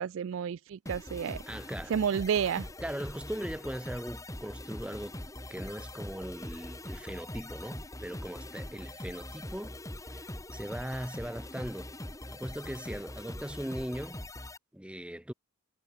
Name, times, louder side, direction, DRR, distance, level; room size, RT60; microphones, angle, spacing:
voice 1, 0.0-1.4 1.9-2.7, right 7 dB, 60° right, 0.3 m, -30 dB
sound 1, 0.9-14.6, left 1 dB, 15° left, 2.6 m, -42 dB
voice 2, 1.5-1.9 2.8-5.2 5.5-9.8 10.1-12.0 12.3-14.2 14.7-15.3, equal, 5° right, 0.8 m, -39 dB
head